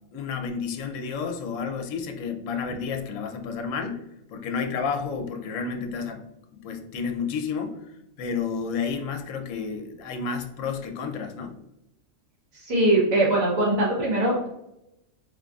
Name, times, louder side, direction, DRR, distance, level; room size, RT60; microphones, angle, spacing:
voice 1, 0.1-4.0 4.3-6.2 6.5-7.9 8.2-11.6, left 5 dB, 75° left, 5 dB, 0.9 m, -31 dB
voice 2, 12.5-14.5, right 1 dB, 80° right, -4 dB, 1.6 m, -22 dB
3.7 x 3.1 x 2.3 m, 0.85 s
omnidirectional pair, 1.4 m